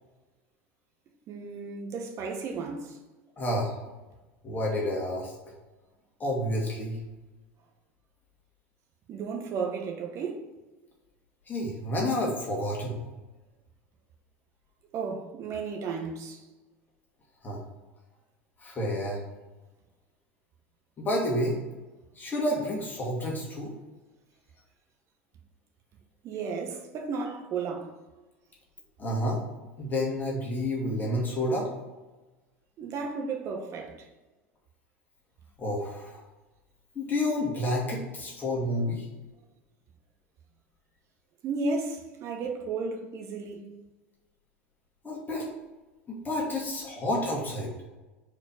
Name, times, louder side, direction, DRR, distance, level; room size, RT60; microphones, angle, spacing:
voice 1, 1.3-3.0 9.1-10.4 14.9-16.4 26.2-27.9 32.8-34.1 41.4-43.6, right 4 dB, 45° right, 1.2 m, -33 dB
voice 2, 3.4-3.8 4.4-5.5 6.2-7.0 11.5-13.0 17.4-17.6 18.6-19.2 21.0-21.6 22.2-23.8 29.0-29.4 29.8-31.7 35.6-36.2 37.0-39.1 45.0-45.5 46.1-47.7, left 1 dB, 25° left, 1.8 m, -30 dB
4.8 x 4.3 x 5.2 m
hypercardioid pair, 75°, 7 cm